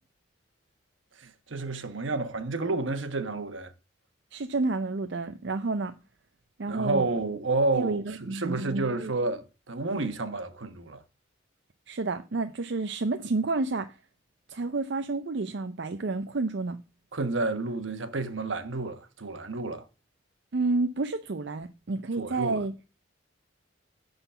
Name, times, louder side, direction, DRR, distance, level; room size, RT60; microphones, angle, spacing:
voice 1, 1.2-3.7 6.7-11.0 17.1-19.9 22.2-22.6, right 3 dB, 75° right, 1.1 m, -30 dB
voice 2, 4.3-5.9 6.6-7.1 7.7-9.1 11.9-13.9 14.5-16.8 20.5-22.7, right 3 dB, 60° right, 0.5 m, -30 dB
10.0 x 4.0 x 6.8 m
head